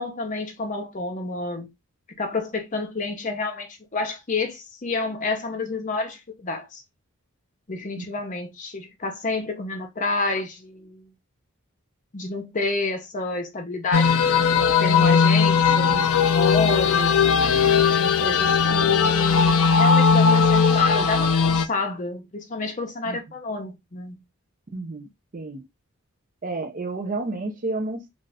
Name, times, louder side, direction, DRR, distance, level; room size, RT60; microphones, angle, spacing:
voice 1, 0.0-1.7 2.2-6.8 7.7-11.1 12.1-17.2 18.0-24.2, left 3 dB, 35° left, 0.7 m, -29 dB
sound 1, 13.9-21.7, left 6 dB, 75° left, 0.4 m, -18 dB
voice 2, 24.7-25.7 26.4-28.1, right 2 dB, 40° right, 0.5 m, -31 dB
2.5 x 2.4 x 3.2 m
head